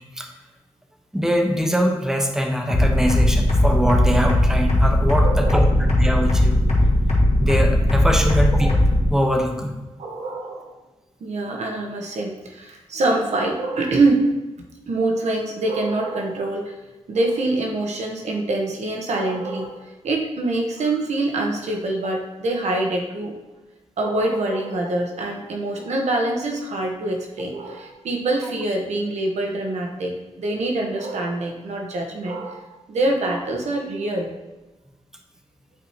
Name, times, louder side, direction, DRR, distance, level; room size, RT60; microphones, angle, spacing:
voice 1, 1.1-6.6 7.4-8.8 9.1-9.8, equal, 5° right, 2 dB, 1.0 m, -22 dB
sound 1, 2.7-9.1, left 1 dB, 70° left, 1.9 m, -18 dB
voice 2, 5.2-5.7 6.8-6.9 8.2-8.4 10.0-10.7 11.2-14.3 14.9-16.7 17.1-23.3 24.0-30.1 30.4-34.3, right 2 dB, 80° right, 1 dB, 1.2 m, -25 dB
8.8 x 4.7 x 2.9 m, 1.1 s
cardioid pair, 70°, 12 cm